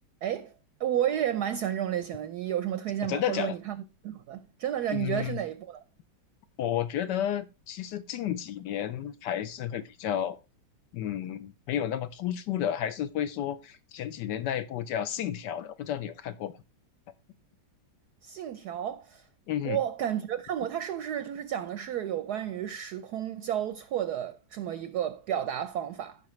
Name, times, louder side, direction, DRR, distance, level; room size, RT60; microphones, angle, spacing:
voice 1, 0.2-0.5 0.8-3.8 4.0-5.8 18.2-19.2 19.6-26.2, right 10 dB, 70° right, 1.0 m, -32 dB
voice 2, 3.0-3.5 4.9-5.4 6.6-10.4 10.9-16.5 19.5-19.8, left 10 dB, 70° left, 1.1 m, -32 dB
14.5 x 5.1 x 3.1 m
omnidirectional pair, 2.1 m